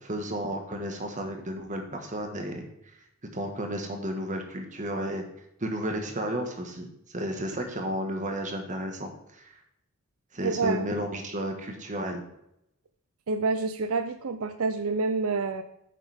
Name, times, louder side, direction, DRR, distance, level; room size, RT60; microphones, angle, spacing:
voice 1, 0.0-2.7 3.3-5.2 5.6-9.5 10.3-12.2, equal, 35° right, 4 dB, 1.6 m, -33 dB
voice 2, 10.4-10.9 13.3-15.6, right 3 dB, 80° right, 9 dB, 0.6 m, -28 dB
9.5 x 7.0 x 3.6 m, 0.78 s
head